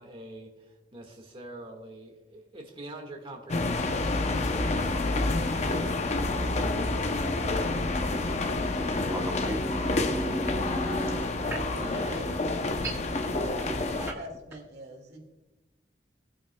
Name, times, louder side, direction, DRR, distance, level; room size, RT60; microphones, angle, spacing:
voice 1, 0.0-4.9, right 1 dB, 30° right, 1.7 m, -45 dB
sound 1, 3.5-14.1, left 2 dB, 40° left, 0.7 m, -28 dB
voice 2, 8.6-11.2 11.5-11.9 12.8-14.1, right 1 dB, 15° right, 0.8 m, -35 dB
voice 3, 10.6-11.2 11.4-12.5 13.4-15.3, right 2 dB, 65° right, 2.2 m, -43 dB
19.0 x 8.8 x 2.3 m
head